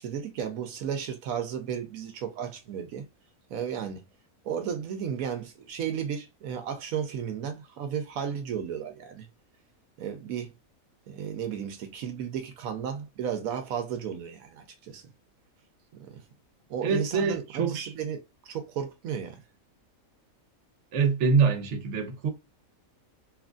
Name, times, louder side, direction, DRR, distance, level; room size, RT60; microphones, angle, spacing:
voice 1, 0.0-3.0 3.5-4.0 4.4-9.3 10.0-10.5 11.1-15.0 16.0-16.2 16.7-19.4, right 8 dB, 80° right, 1.0 m, -34 dB
voice 2, 16.8-17.9 20.9-22.3, right 5 dB, 60° right, 1.0 m, -25 dB
3.1 x 2.5 x 2.3 m
omnidirectional pair, 1.5 m